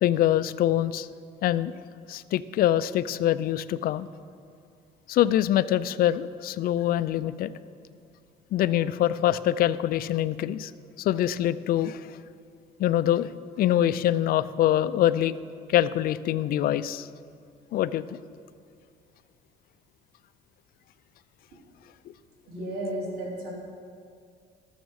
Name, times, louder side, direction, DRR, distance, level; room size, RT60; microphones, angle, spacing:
voice 1, 0.0-1.1 1.4-1.7 2.1-4.1 5.1-7.5 8.5-10.7 11.0-12.0 12.8-13.3 13.6-15.3 15.7-17.1 17.7-18.0, left 12 dB, 60° left, 15 dB, 0.4 m, -24 dB
voice 2, 22.5-23.5, right 1 dB, 65° right, -4 dB, 3.4 m, -33 dB
12.5 x 7.1 x 6.4 m, 2.3 s
cardioid pair, 110°, 17 cm